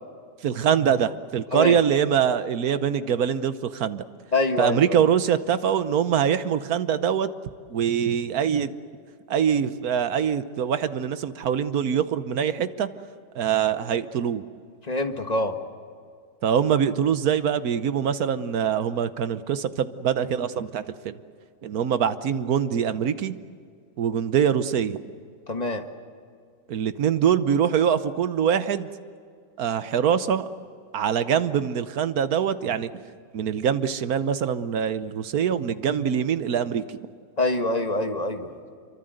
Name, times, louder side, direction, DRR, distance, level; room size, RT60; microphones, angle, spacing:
voice 1, 0.4-4.0 4.6-7.3 7.7-8.7 9.3-12.9 13.3-14.4 16.4-21.2 21.6-23.3 24.0-25.0 26.7-28.9 29.6-30.5 30.9-32.9 33.3-37.0, right 8 dB, 60° right, 12 dB, 1.3 m, -24 dB
voice 2, 4.3-5.0 14.8-15.6 25.5-25.8 37.4-38.5, left 2 dB, 25° left, 6 dB, 1.4 m, -25 dB
26.5 x 24.0 x 7.9 m, 2.2 s
omnidirectional pair, 2.0 m